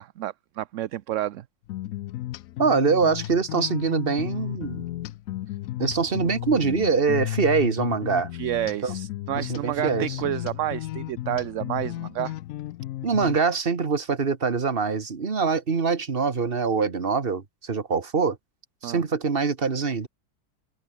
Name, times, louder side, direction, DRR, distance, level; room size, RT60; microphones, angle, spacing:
voice 1, 0.0-1.4 8.3-12.3 18.8-19.0, right 13 dB, 65° right, 0.9 m, -30 dB
sound 1, 1.7-13.4, left 14 dB, 70° left, 0.9 m, -34 dB
voice 2, 2.6-4.8 5.8-8.3 8.8-8.9 9.4-10.1 13.0-18.4 18.8-20.1, right 5 dB, 35° right, 1.7 m, -24 dB
omnidirectional pair, 1.6 m